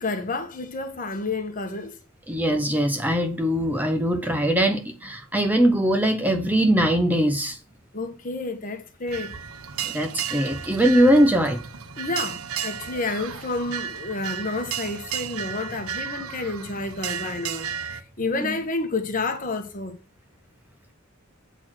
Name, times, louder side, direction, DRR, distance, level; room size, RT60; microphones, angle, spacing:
voice 1, 0.0-1.9 7.9-9.3 12.0-19.9, left 3 dB, 40° left, 1.4 m, -30 dB
voice 2, 2.3-7.6 9.8-11.6 18.4-18.5, equal, 10° right, 0.8 m, -21 dB
sound 1, 9.1-18.0, right 8 dB, 85° right, 0.8 m, -33 dB
8.0 x 4.3 x 6.0 m
head